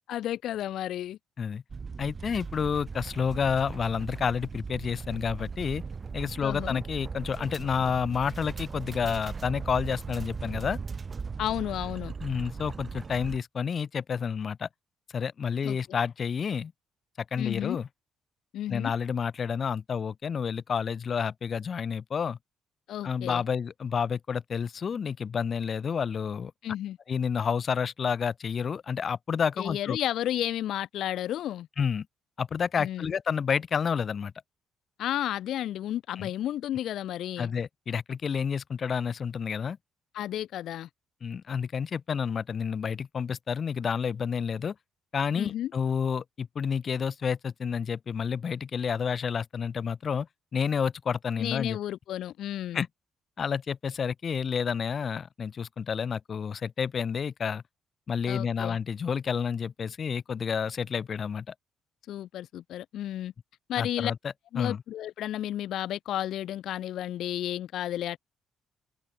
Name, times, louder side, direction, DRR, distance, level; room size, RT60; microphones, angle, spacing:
voice 1, 0.1-1.2 6.4-6.8 11.4-12.1 15.6-15.8 17.4-17.8 18.5-18.9 22.9-23.4 26.6-27.0 29.6-31.7 32.8-33.1 35.0-37.5 40.1-40.9 45.4-45.7 51.4-52.8 58.3-58.8 62.1-63.3 63.7-64.1 64.5-68.2, left 12 dB, 75° left, 1.8 m, -32 dB
sound 1, 1.7-13.4, right 5 dB, 35° right, 7.3 m, -38 dB
voice 2, 2.0-5.8 6.1-10.8 12.2-14.7 15.1-16.7 17.3-17.9 18.7-22.4 23.0-26.5 27.1-30.0 31.8-32.1 32.4-34.3 36.2-36.3 37.4-39.8 41.2-44.7 45.1-50.3 50.5-51.8 52.7-52.9 53.4-57.6 58.1-61.5 63.8-64.2 64.6-64.8, left 6 dB, 50° left, 2.5 m, -30 dB
cardioid pair, 90°, 0 cm